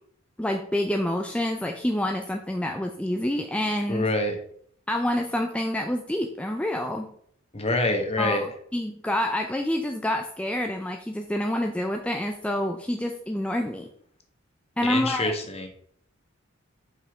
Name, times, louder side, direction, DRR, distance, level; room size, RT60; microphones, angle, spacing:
voice 1, 0.4-4.1 4.9-7.1 8.2-13.9 14.8-15.3, left 1 dB, 5° left, 3 dB, 0.5 m, -27 dB
voice 2, 3.9-4.3 7.5-8.5 14.8-15.7, left 2 dB, 30° left, 5 dB, 1.2 m, -26 dB
7.8 x 5.5 x 3.5 m, 0.64 s
head